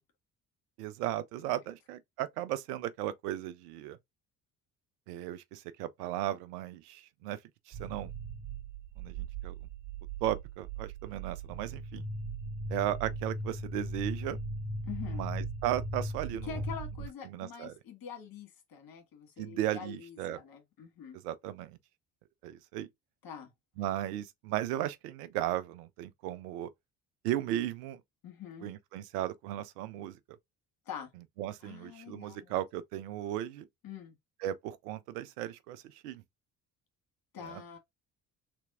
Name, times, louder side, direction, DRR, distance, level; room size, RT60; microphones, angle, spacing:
voice 1, 0.8-4.0 5.1-7.4 7.7-8.1 9.0-9.6 10.2-12.1 12.7-14.4 15.1-16.5 17.3-17.7 19.4-20.4 21.2-21.8 22.4-22.9 23.8-26.7 27.2-28.0 28.6-30.2 31.4-33.7 34.4-36.2, right 13 dB, 75° right, 0.7 m, -36 dB
Low fi science fiction rumble, 7.7-17.1, right 2 dB, 35° right, 1.6 m, -38 dB
voice 2, 14.8-15.3 16.5-21.2 23.2-23.5 28.2-28.7 30.9-31.1 31.6-32.6 33.8-34.2 37.3-37.8, left 8 dB, 50° left, 1.8 m, -45 dB
3.4 x 3.0 x 3.6 m
hypercardioid pair, 50°, 46 cm